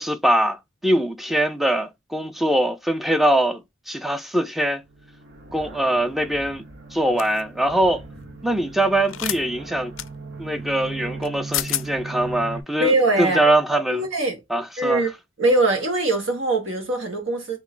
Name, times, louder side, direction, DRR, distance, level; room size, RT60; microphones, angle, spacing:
voice 1, 0.0-3.6 3.9-4.8 5.5-6.6 6.9-8.0 8.4-9.9 10.4-14.0 14.5-15.0, right 1 dB, ahead, 0.4 m, -22 dB
sound 1, 4.8-12.6, right 3 dB, 60° right, 1.2 m, -38 dB
sound 2, 7.2-7.4 9.1-9.4 10.0-10.1 11.2-11.3 11.5-11.9, left 15 dB, 80° left, 0.3 m, -27 dB
voice 2, 12.8-13.4 13.9-14.4 14.8-15.1 15.4-17.6, right 2 dB, 80° right, 1.6 m, -21 dB
3.1 x 3.0 x 3.8 m
head